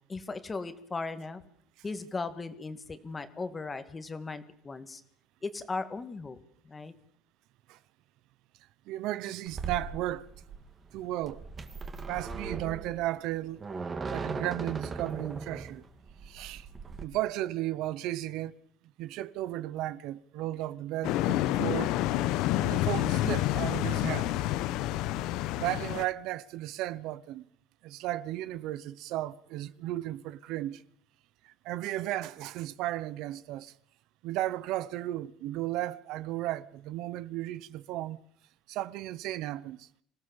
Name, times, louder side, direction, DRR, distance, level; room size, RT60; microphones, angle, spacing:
voice 1, 0.1-1.4 1.8-5.0 5.4-6.4 6.6-6.9, left 3 dB, 20° left, 1.9 m, -37 dB
voice 2, 8.9-10.3 10.9-11.4 12.1-13.7 14.1-15.8 16.2-16.7 17.0-18.5 19.0-21.9 22.6-24.3 25.6-27.5 27.8-30.8 31.4-33.7 34.2-38.2 38.7-39.9, right 15 dB, 70° right, 0.9 m, -34 dB
sound 1, 9.5-17.0, right 4 dB, 25° right, 2.3 m, -39 dB
sound 2, 21.0-26.0, left 14 dB, 75° left, 0.9 m, -28 dB
26.5 x 16.5 x 7.1 m
cardioid pair, 135°, 0 cm